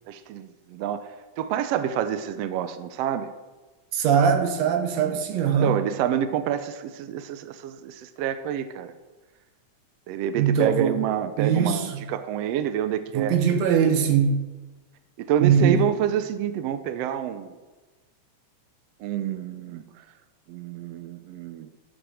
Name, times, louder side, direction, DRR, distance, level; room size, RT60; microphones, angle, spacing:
voice 1, 0.1-1.1 1.4-3.3 5.6-8.9 10.1-13.3 15.2-17.5 19.0-19.9 20.5-21.7, right 10 dB, 85° right, 1.4 m, -28 dB
voice 2, 3.9-5.8 10.4-11.0 11.4-12.1 13.1-14.4 15.4-15.9, right 7 dB, 70° right, 2.1 m, -21 dB
13.0 x 6.3 x 6.3 m
omnidirectional pair, 3.5 m